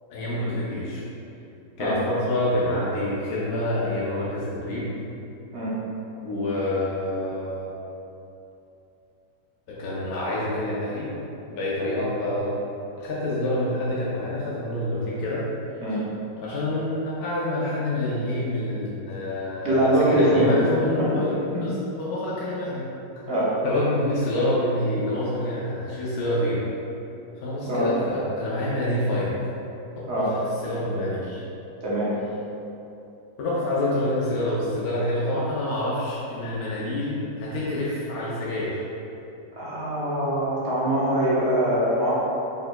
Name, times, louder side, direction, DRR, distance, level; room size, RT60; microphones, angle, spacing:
voice 1, 0.1-1.0 1.8-4.9 6.2-7.8 9.7-11.1 11.5-12.5 13.0-15.4 16.4-21.3 21.6-22.9 23.6-26.6 27.4-29.4 30.2-31.4 33.4-38.8, left 1 dB, 65° left, -7 dB, 1.0 m, -27 dB
voice 2, 19.6-20.5 21.0-21.1 21.5-21.6 23.3-23.6 27.6-27.9 30.1-30.4 31.8-32.1 39.6-42.3, right 1 dB, 55° right, -8 dB, 0.8 m, -23 dB
4.2 x 3.8 x 2.2 m, 2.9 s
omnidirectional pair, 2.0 m